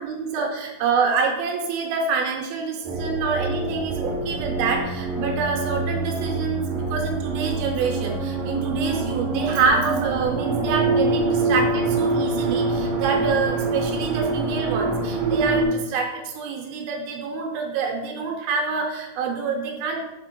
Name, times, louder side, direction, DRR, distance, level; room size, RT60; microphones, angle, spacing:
voice 1, 0.0-20.0, right 5 dB, 90° right, 1 dB, 2.7 m, -26 dB
sound 1, 2.8-15.6, right 3 dB, 75° right, 2.5 m, -25 dB
6.5 x 3.7 x 5.9 m, 1.1 s
omnidirectional pair, 4.2 m